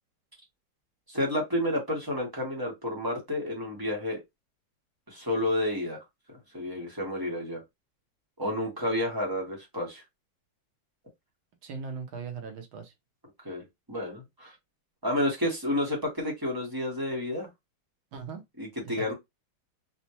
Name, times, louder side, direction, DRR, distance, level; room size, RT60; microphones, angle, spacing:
voice 1, 1.1-4.2 5.1-6.0 6.5-7.6 8.4-10.0 13.4-14.5 15.0-17.5 18.6-19.1, left 1 dB, 20° right, 0.6 m, -30 dB
voice 2, 11.6-12.9 18.1-18.4 18.8-19.1, right 5 dB, 75° right, 1.7 m, -39 dB
4.1 x 2.1 x 2.9 m
omnidirectional pair, 2.3 m